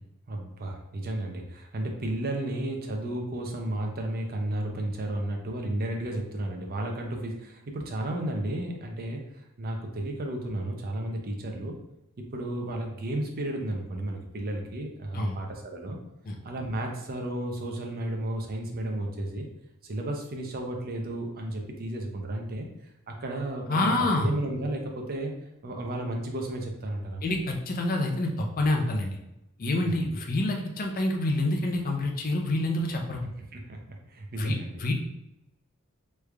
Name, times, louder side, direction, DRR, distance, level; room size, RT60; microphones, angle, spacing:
voice 1, 0.3-11.8 12.2-16.0 16.4-19.5 19.8-22.7 23.1-25.3 25.6-27.2 29.8-30.0 33.5-34.8, right 1 dB, 45° right, 2 dB, 0.5 m, -33 dB
voice 2, 23.7-24.3 27.2-29.2 29.6-33.2 34.4-34.9, left 1 dB, 40° left, 2 dB, 0.5 m, -27 dB
3.2 x 2.4 x 3.3 m, 0.89 s
head